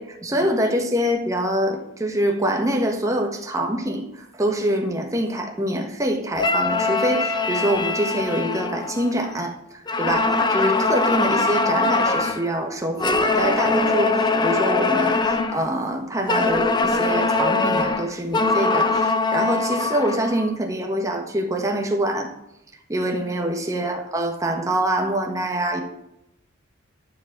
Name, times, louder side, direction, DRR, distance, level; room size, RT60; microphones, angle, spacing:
voice 1, 0.0-22.3 22.9-25.8, right 1 dB, 15° right, 2 dB, 1.4 m, -25 dB
sound 1, 6.4-9.4 9.9-12.5 13.0-15.6 16.3-20.5, left 3 dB, 20° left, 0.7 m, -22 dB
11.5 x 4.8 x 7.5 m, 0.83 s
head